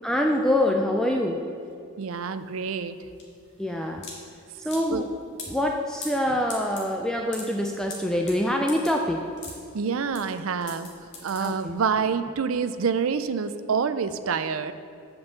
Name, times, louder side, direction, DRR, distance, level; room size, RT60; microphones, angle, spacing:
voice 1, 0.0-1.5 3.6-4.1 4.6-9.5 11.4-11.8, left 1 dB, 5° left, 1 dB, 0.3 m, -25 dB
voice 2, 2.0-2.9 4.9-5.0 9.7-10.9 11.2-14.7, right 6 dB, 65° right, 11 dB, 0.4 m, -27 dB
sound 1, 2.1-12.0, left 3 dB, 55° left, 1.9 m, -42 dB
8.0 x 5.4 x 6.8 m, 2.5 s
head